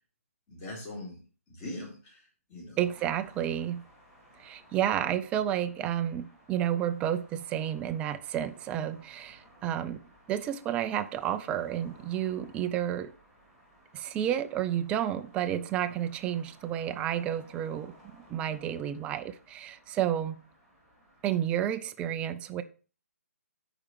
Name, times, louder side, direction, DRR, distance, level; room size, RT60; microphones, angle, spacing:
voice 1, 0.5-1.2 1.5-2.8, left 1 dB, 30° left, 4.4 m, -42 dB
sound 1, 2.8-21.5, equal, 5° left, 2.9 m, -58 dB
voice 2, 2.8-3.8 4.4-10.0 10.3-13.1 13.9-20.3 21.2-22.6, right 10 dB, 15° right, 0.4 m, -31 dB
12.5 x 5.0 x 3.2 m
figure-of-eight pair, 145°, 8 cm